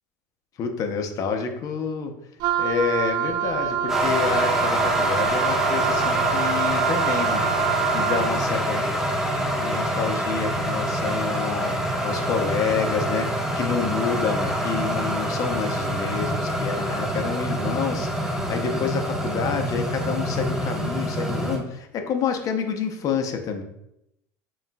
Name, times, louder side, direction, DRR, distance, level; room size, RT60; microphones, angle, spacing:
voice 1, 0.6-2.1 2.6-7.5 7.9-8.9 9.6-23.6, left 6 dB, 45° left, 5 dB, 0.7 m, -28 dB
Wind instrument woodwind instrument, 2.4-8.4, right 9 dB, 60° right, 0.4 m, -26 dB
sound 1, 3.9-21.6, equal, 5° right, 1.5 m, -25 dB
7.1 x 2.4 x 2.2 m, 0.81 s
supercardioid pair, 105°, 8 cm